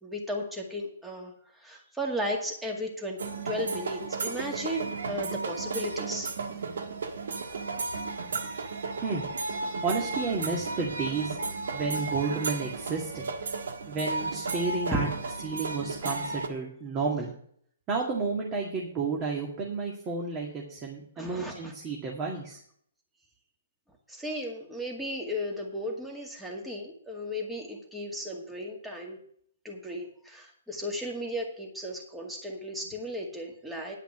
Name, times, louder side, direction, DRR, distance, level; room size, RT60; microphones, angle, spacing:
voice 1, 0.0-3.2 3.4-6.3 14.9-15.0 21.2-21.7 24.1-29.2 29.6-34.0, equal, 5° right, 0 dB, 2.0 m, -35 dB
sound 1, 3.2-16.5, right 3 dB, 75° right, 1.4 m, -34 dB
voice 2, 9.8-11.4 11.7-13.3 13.9-15.1 15.4-17.3 17.9-22.6, right 4 dB, 25° right, -1 dB, 2.2 m, -31 dB
10.0 x 5.8 x 7.4 m, 0.63 s
hypercardioid pair, 135°, 0 cm